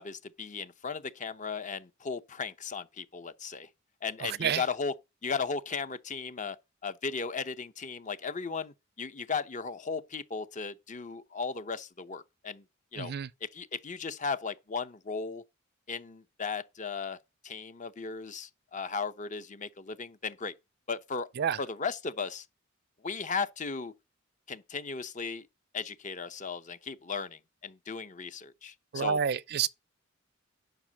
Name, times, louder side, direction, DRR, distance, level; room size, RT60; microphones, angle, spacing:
voice 1, 0.0-3.7 4.0-4.9 5.2-6.6 6.8-12.6 12.9-13.1 13.4-15.4 15.9-17.2 17.4-20.5 20.9-21.3 21.6-22.5 23.0-23.9 24.5-25.5 25.7-29.2, left 5 dB, 40° left, 0.8 m, -36 dB
voice 2, 4.2-4.6 13.0-13.3 21.4-21.6 28.9-29.7, right 7 dB, 55° right, 0.4 m, -29 dB
10.5 x 5.3 x 6.3 m
head